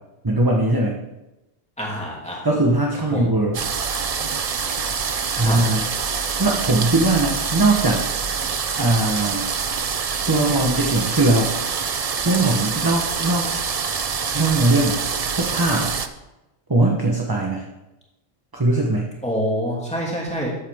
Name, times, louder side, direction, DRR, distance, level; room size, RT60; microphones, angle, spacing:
voice 1, 0.2-1.0 2.4-3.6 5.4-5.9 6.4-8.0 8.4-9.4 10.3-11.5 12.2-13.5 14.3-15.0 15.4-15.9 16.7-17.6 18.5-19.1, right 2 dB, 20° right, -1 dB, 1.0 m, -20 dB
voice 2, 1.8-2.4 3.1-3.3 5.4-5.6 19.2-20.5, equal, 5° left, -4 dB, 2.7 m, -26 dB
sound 1, 3.5-16.1, right 6 dB, 45° right, 0.5 m, -25 dB
13.5 x 8.2 x 3.6 m, 0.99 s
omnidirectional pair, 1.3 m